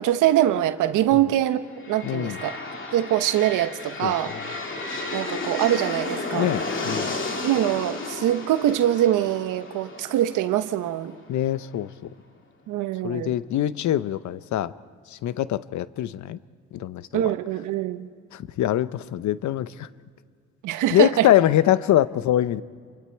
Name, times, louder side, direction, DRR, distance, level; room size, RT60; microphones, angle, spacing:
voice 1, 0.0-2.5 2.9-4.3 5.1-6.5 7.4-11.1 12.7-13.3 17.1-18.1 20.6-21.3, right 12 dB, 85° right, 10 dB, 1.1 m, -23 dB
sound 1, 1.7-11.5, left 3 dB, 40° left, 2.6 m, -33 dB
voice 2, 2.0-2.4 4.0-4.1 6.3-7.1 11.3-11.9 13.0-14.7 15.1-16.4 16.7-17.3 18.3-19.9 20.9-22.6, left 12 dB, 70° left, 16 dB, 0.7 m, -23 dB
29.0 x 24.0 x 4.6 m, 2.1 s
cardioid pair, 90°, 30 cm